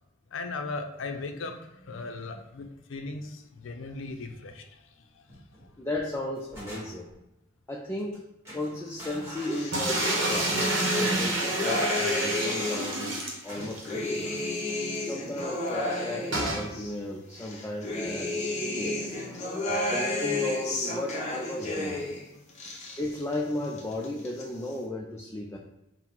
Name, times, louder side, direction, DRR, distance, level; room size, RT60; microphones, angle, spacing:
voice 1, 0.3-5.7, left 3 dB, 75° left, 6 dB, 0.5 m, -38 dB
sound 1, 5.3-5.7 6.1-7.2 8.0-8.2 8.4-10.3 11.2-12.6 13.5-14.5, equal, 15° right, 1.2 m, -46 dB
voice 2, 5.8-7.1 7.7-8.2 8.5-14.4 15.0-19.2 19.7-22.1 23.0-25.6, left 1 dB, 15° left, -2 dB, 0.3 m, -35 dB
sound 2, 9.4-13.0 13.5-16.9 17.4-22.2 22.5-23.4 23.6-24.4, left 2 dB, 35° left, 0.7 m, -32 dB
sound 3, 9.7-13.9 14.2-14.3 14.6-14.7 16.3-16.7, right 2 dB, 70° right, 0.8 m, -29 dB
3.9 x 2.0 x 4.4 m, 0.90 s
head